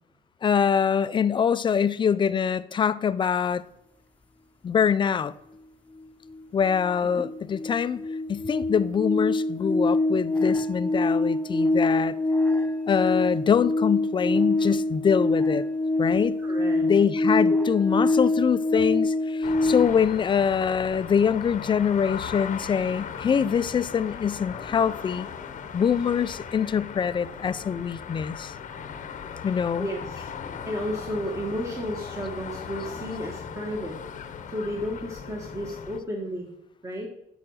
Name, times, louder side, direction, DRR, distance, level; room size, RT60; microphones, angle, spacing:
voice 1, 0.4-3.6 4.6-5.3 6.5-8.0 8.3-12.2 12.9-15.6 16.0-16.4 16.8-25.3 25.7-28.5 29.4-29.9, left 7 dB, 30° left, 0.4 m, -24 dB
sound 1, 6.3-6.4 6.7-19.9, left 2 dB, 5° left, 1.0 m, -25 dB
voice 2, 16.4-16.9 17.5-17.6 29.8-30.3 30.7-34.0 34.5-36.5 36.8-37.1, equal, 15° right, 1.5 m, -32 dB
sound 2, 19.4-36.0, left 7 dB, 45° left, 0.9 m, -38 dB
8.8 x 7.1 x 6.4 m
cardioid pair, 110°, 17 cm